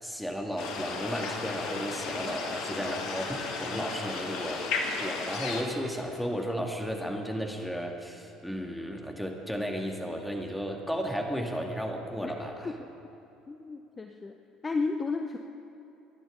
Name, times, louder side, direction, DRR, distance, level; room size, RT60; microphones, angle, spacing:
voice 1, 0.0-4.6 5.0-12.7, equal, ahead, 1 dB, 2.5 m, -34 dB
sound 1, 0.6-5.6, left 4 dB, 60° left, 1.8 m, -34 dB
voice 2, 13.5-14.3 14.6-15.4, left 4 dB, 25° left, 5 dB, 0.9 m, -33 dB
24.5 x 10.5 x 5.2 m, 2.9 s
figure-of-eight pair, 60°, 0 cm